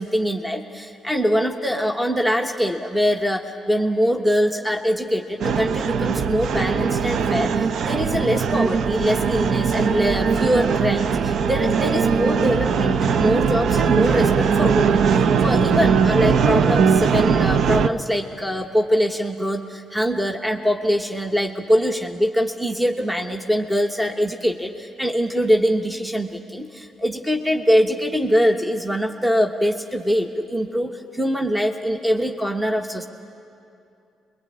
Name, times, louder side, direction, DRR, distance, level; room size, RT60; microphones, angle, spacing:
voice 1, 0.0-33.1, equal, 5° right, 5 dB, 1.0 m, -23 dB
sound 1, 5.4-17.9, right 6 dB, 65° right, 0.6 m, -20 dB
23.5 x 22.0 x 8.7 m, 2.6 s
cardioid pair, 90°, 0 cm